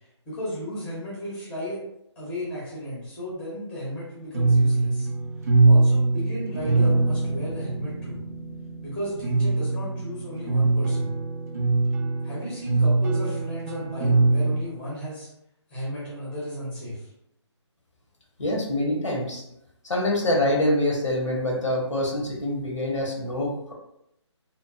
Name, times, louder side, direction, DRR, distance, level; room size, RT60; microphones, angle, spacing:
voice 1, 0.3-1.8 2.2-5.1 5.4-8.2 8.8-11.1 12.2-15.3 15.7-17.0, equal, 5° left, -8 dB, 0.7 m, -34 dB
sound 1, 4.3-14.5, right 3 dB, 30° right, 0.4 m, -23 dB
voice 2, 18.4-19.4 19.8-23.7, left 1 dB, 90° left, -1 dB, 0.9 m, -25 dB
2.8 x 2.0 x 2.4 m, 0.78 s
figure-of-eight pair, 155°, 15 cm